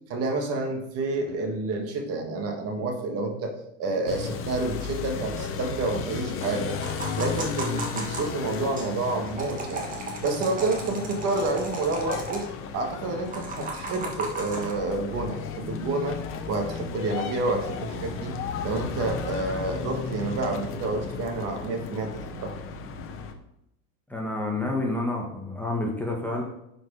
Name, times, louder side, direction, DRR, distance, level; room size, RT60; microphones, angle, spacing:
voice 1, 0.1-3.5 3.8-6.7 7.2-9.9 10.2-12.5 12.7-16.2 16.5-18.4 18.6-22.5, right 2 dB, 40° right, 4 dB, 1.7 m, -29 dB
sound 1, 4.1-23.3, left 6 dB, 35° left, 1.0 m, -35 dB
sound 2, 6.8-8.9 9.3-12.5 13.3-14.7, right 3 dB, 20° right, 1.6 m, -36 dB
voice 2, 24.1-26.4, left 2 dB, 5° left, -1 dB, 1.6 m, -29 dB
10.5 x 5.0 x 4.9 m, 0.81 s
supercardioid pair, 140°, 38 cm